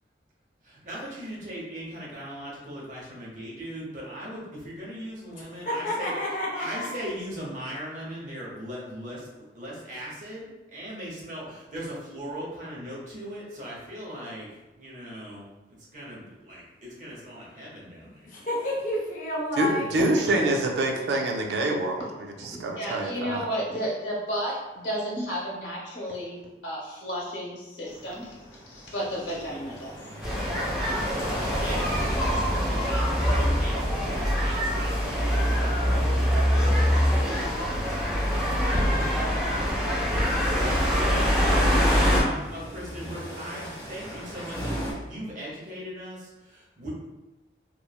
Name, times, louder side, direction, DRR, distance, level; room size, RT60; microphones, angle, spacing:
voice 1, 0.6-6.1 6.6-14.5 14.8-15.5 15.9-18.3 31.2-36.0 40.6-46.9, equal, 45° right, -5 dB, 0.7 m, -39 dB
voice 2, 5.5-6.9 17.9-19.9, left 1 dB, 45° left, -3 dB, 0.5 m, -30 dB
voice 3, 19.6-22.0 22.4-23.4, right 2 dB, 75° right, 2 dB, 0.4 m, -26 dB
voice 4, 22.8-26.4 26.6-29.9, equal, 85° left, -4 dB, 0.9 m, -32 dB
sound 1, 27.8-44.9, equal, 20° left, 0.8 m, -39 dB
sound 2, 30.2-42.2, equal, 5° right, 0.5 m, -24 dB
3.0 x 2.0 x 2.3 m, 1.0 s
head